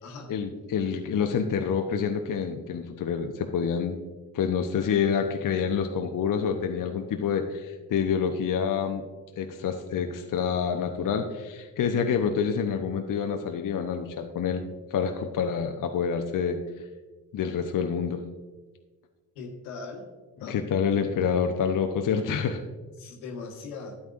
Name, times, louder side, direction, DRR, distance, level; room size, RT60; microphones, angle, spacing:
voice 1, 0.3-4.0 4.3-9.0 9.4-16.6 17.3-18.2 20.4-22.6, left 7 dB, 45° left, 5 dB, 0.8 m, -27 dB
voice 2, 19.3-20.1 20.4-20.6 23.0-24.0, left 4 dB, 75° left, 2 dB, 1.4 m, -39 dB
12.5 x 8.5 x 2.5 m, 1.3 s
hypercardioid pair, 40°, 47 cm